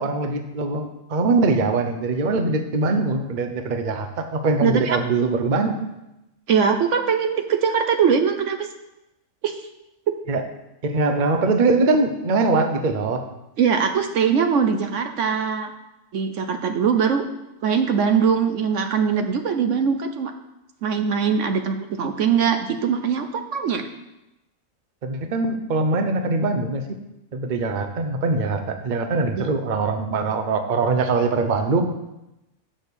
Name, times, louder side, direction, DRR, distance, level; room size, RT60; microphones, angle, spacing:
voice 1, 0.0-5.9 10.3-10.4 10.8-13.2 25.0-26.8 27.3-32.0, right 3 dB, 40° right, 6 dB, 0.8 m, -22 dB
voice 2, 4.6-5.0 6.5-8.7 9.4-9.6 13.6-15.7 16.1-17.2 17.6-20.3 20.8-23.8 29.3-29.5, right 6 dB, 65° right, 7 dB, 1.0 m, -21 dB
7.6 x 6.3 x 6.8 m, 0.93 s
omnidirectional pair, 1.4 m